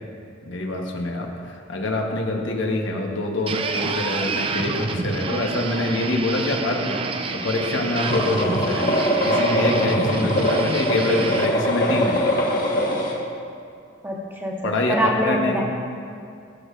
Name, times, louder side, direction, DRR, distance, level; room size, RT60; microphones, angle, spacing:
voice 1, 0.5-1.3 1.7-7.1 7.4-12.2 14.6-15.6, left 2 dB, 80° left, 1 dB, 1.1 m, -25 dB
sound 1, 3.5-11.5, right 4 dB, 25° right, 0.3 m, -28 dB
sound 2, 8.0-13.1, equal, 50° left, 1.5 m, -22 dB
voice 2, 14.0-15.6, equal, 10° right, -2 dB, 1.0 m, -24 dB
18.0 x 6.5 x 2.5 m, 2.4 s
head